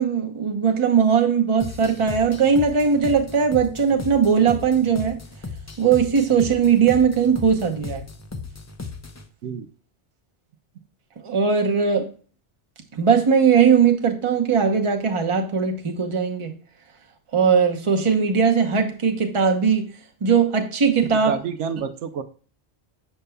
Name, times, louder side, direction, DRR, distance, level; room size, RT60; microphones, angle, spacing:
voice 1, 0.0-5.2 5.8-8.0 11.2-12.1 12.9-16.5 17.3-19.9 20.2-21.3, right 6 dB, 30° right, 0.8 m, -19 dB
sound 1, 1.6-9.3, left 4 dB, 25° left, 0.3 m, -36 dB
voice 2, 21.1-22.2, right 7 dB, 85° right, 0.9 m, -28 dB
6.9 x 6.6 x 2.2 m
omnidirectional pair, 1.2 m